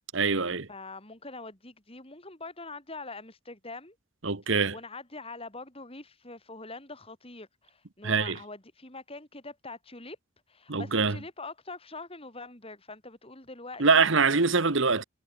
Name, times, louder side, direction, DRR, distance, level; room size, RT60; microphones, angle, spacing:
voice 1, 0.1-0.7 4.2-4.7 8.0-8.4 10.7-11.2 13.8-15.0, right 4 dB, 60° right, 1.3 m, -24 dB
voice 2, 0.7-4.0 4.5-10.2 10.5-14.1, left 3 dB, 25° left, 4.7 m, -44 dB
head